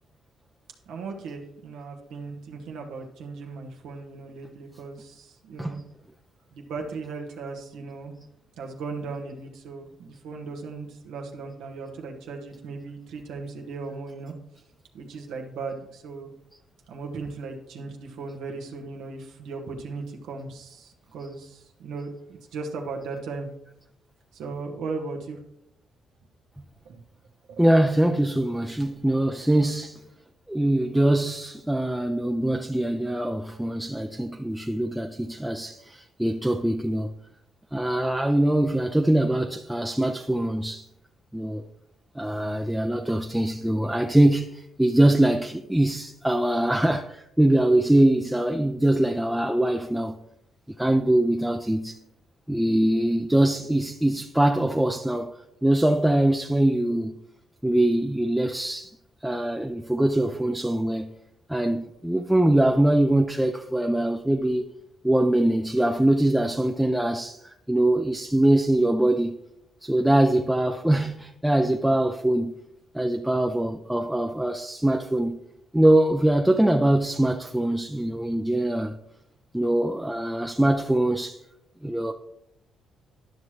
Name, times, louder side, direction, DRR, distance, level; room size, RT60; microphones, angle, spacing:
voice 1, 0.9-5.8 6.5-8.2 8.6-14.3 14.9-16.3 16.9-23.5 24.3-25.4 26.8-27.0 27.5-27.6, right 4 dB, 85° right, 1.2 m, -37 dB
voice 2, 27.6-30.0 30.5-37.1 37.7-40.8 41.3-41.6 42.2-50.2 50.8-52.0 52.5-55.3 55.6-57.1 57.6-58.9 59.2-61.1 61.5-64.6 65.0-67.4 67.7-69.4 69.8-72.6 72.9-75.4 75.7-79.0 79.5-81.4 81.8-82.1, right 1 dB, 5° right, 0.5 m, -23 dB
11.5 x 5.9 x 3.2 m
cardioid pair, 90°, 0 cm